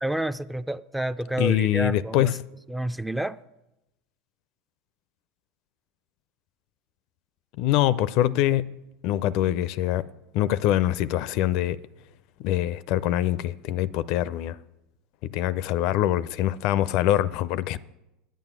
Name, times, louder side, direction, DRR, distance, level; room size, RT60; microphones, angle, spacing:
voice 1, 0.0-2.4 2.7-3.4, right 1 dB, 5° right, 0.4 m, -29 dB
voice 2, 1.4-2.4 7.6-8.7 9.0-10.1 10.3-11.8 12.4-14.6 15.2-17.8, left 13 dB, 60° left, 0.4 m, -24 dB
9.1 x 9.1 x 6.0 m
hypercardioid pair, 90°, 0 cm